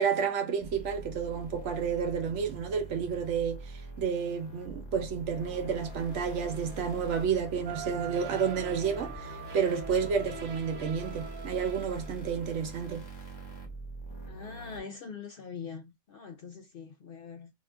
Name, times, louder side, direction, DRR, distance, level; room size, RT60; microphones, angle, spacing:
voice 1, 0.0-3.6 4.0-13.0, right 6 dB, 60° right, 1.0 m, -30 dB
sound 1, 0.6-14.8, right 2 dB, 20° left, 1.0 m, -44 dB
sound 2, 5.4-11.3, left 1 dB, 5° right, 0.6 m, -52 dB
sound 3, 7.6-12.5, right 7 dB, 85° right, 1.1 m, -43 dB
voice 2, 14.3-17.5, left 5 dB, 75° left, 0.5 m, -43 dB
2.9 x 2.4 x 3.2 m
omnidirectional pair, 1.5 m